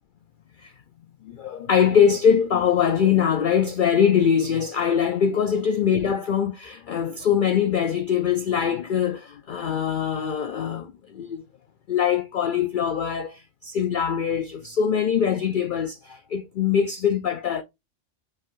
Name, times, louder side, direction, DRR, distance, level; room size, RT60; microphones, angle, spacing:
voice 1, 1.2-11.4 11.9-17.6, left 8 dB, 75° left, 0.4 m, -23 dB
5.4 x 3.5 x 2.4 m
omnidirectional pair, 1.4 m